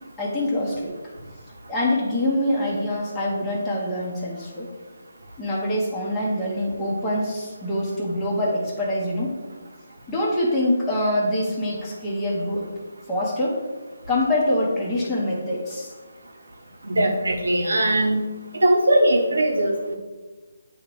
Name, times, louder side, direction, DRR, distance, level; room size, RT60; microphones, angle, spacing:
voice 1, 0.2-0.9 1.7-4.7 5.4-9.4 10.1-12.7 13.1-13.6 14.1-15.9, left 1 dB, 10° left, -7 dB, 1.1 m, -25 dB
voice 2, 16.8-18.2 18.6-20.0, right 1 dB, 85° right, 2 dB, 1.2 m, -20 dB
8.3 x 2.9 x 4.7 m, 1.3 s
hypercardioid pair, 160°, 0 cm